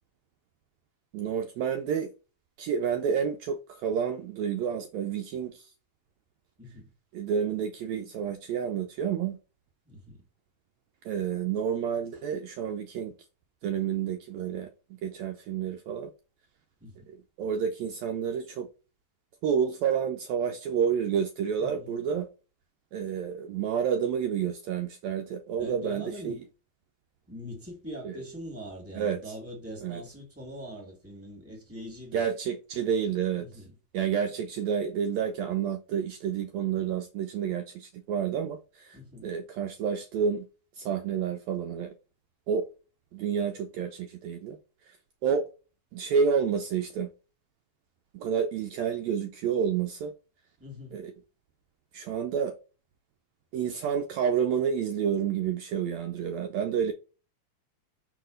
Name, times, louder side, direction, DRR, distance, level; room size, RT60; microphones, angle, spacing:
voice 1, 1.1-2.1 2.6-5.7 7.1-9.4 11.0-13.1 13.6-14.7 15.0-16.1 17.1-18.7 19.4-22.3 22.9-26.3 28.0-28.1 28.9-29.3 29.8-30.0 32.1-33.6 33.9-40.5 40.8-41.9 42.5-42.6 43.1-44.6 44.9-45.0 45.2-45.4 45.9-47.1 48.1-50.1 50.9-51.1 51.9-52.5 53.5-56.9, right 7 dB, 80° right, 1.6 m, -29 dB
voice 2, 6.6-6.9 9.8-10.2 16.8-17.0 21.6-21.9 25.6-26.4 27.3-32.2 33.4-33.7 38.9-39.3 50.6-51.0, equal, 5° right, 1.7 m, -42 dB
4.7 x 3.9 x 5.1 m
omnidirectional pair, 3.4 m